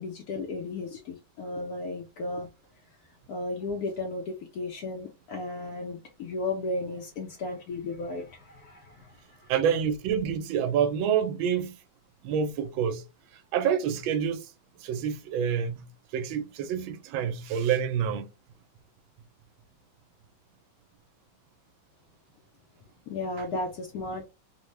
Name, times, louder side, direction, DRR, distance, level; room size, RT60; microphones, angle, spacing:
voice 1, 0.0-2.5 3.0-9.5 23.1-24.3, left 2 dB, 75° left, 0.9 m, -35 dB
voice 2, 9.5-11.8 12.2-13.0 13.3-14.5 14.8-18.3, right 8 dB, 85° right, 1.4 m, -27 dB
3.5 x 2.1 x 3.1 m
omnidirectional pair, 2.1 m